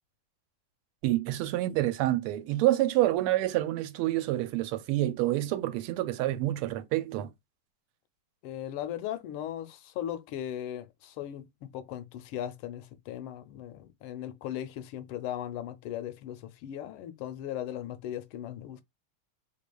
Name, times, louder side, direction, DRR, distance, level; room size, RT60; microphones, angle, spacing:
voice 1, 1.0-7.3, right 15 dB, 90° right, 1.5 m, -28 dB
voice 2, 8.4-18.8, left 11 dB, 80° left, 1.4 m, -38 dB
3.8 x 3.4 x 2.2 m
omnidirectional pair, 2.4 m